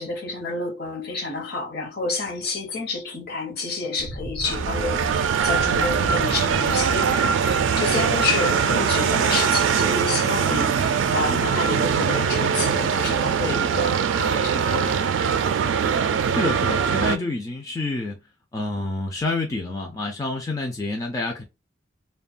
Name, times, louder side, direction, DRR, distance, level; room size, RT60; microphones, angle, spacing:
voice 1, 0.0-15.0, left 3 dB, 55° left, 0.8 m, -29 dB
sound 1, 4.0-12.9, right 1 dB, 80° left, 1.2 m, -38 dB
sound 2, 4.4-17.2, right 6 dB, 85° right, 0.3 m, -22 dB
voice 2, 16.3-18.2 18.5-21.4, left 2 dB, 20° left, 0.3 m, -28 dB
2.9 x 2.2 x 2.4 m
head